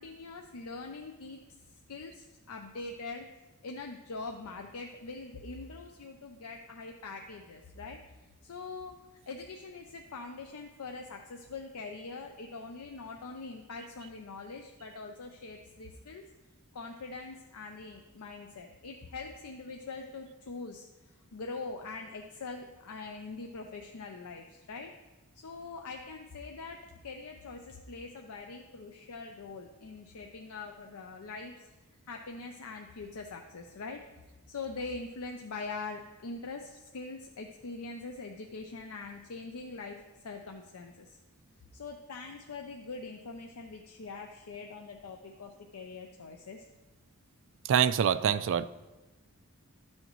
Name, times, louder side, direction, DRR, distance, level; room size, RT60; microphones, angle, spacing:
voice 1, 0.0-1.4 1.9-3.3 3.6-8.1 8.4-9.0 9.3-16.3 16.7-20.9 21.3-24.9 25.3-31.7 32.1-34.0 34.5-41.2 41.7-46.7, left 3 dB, 75° left, 3 dB, 0.6 m, -43 dB
voice 2, 47.7-48.7, right 8 dB, 60° right, 13 dB, 0.3 m, -25 dB
12.5 x 6.4 x 3.0 m, 1.1 s
head